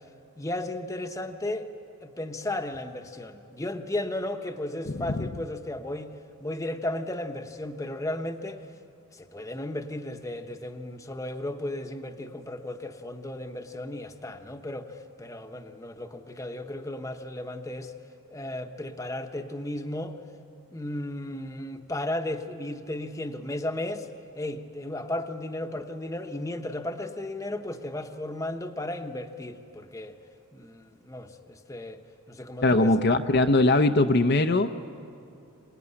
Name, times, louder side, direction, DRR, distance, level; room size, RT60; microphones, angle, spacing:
voice 1, 0.4-1.7 2.0-8.7 9.1-17.9 18.3-20.2 20.7-24.1 24.3-30.2 30.5-32.0 32.3-32.9, left 1 dB, 15° left, 6 dB, 1.0 m, -35 dB
voice 2, 5.0-5.3 32.6-34.8, left 2 dB, 50° left, 6 dB, 0.7 m, -21 dB
26.0 x 19.0 x 9.8 m, 2.5 s
head